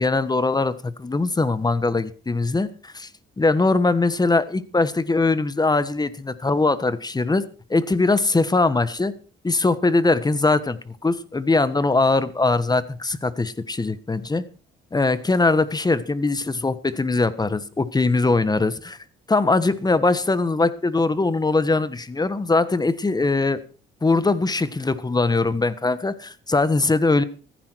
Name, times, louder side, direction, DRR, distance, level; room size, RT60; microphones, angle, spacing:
voice 1, 0.0-3.1 3.4-9.1 9.4-14.4 14.9-19.0 19.3-23.6 24.0-27.2, left 3 dB, 20° left, 1.4 m, -21 dB
15.0 x 14.5 x 4.6 m
cardioid pair, 90°, 20 cm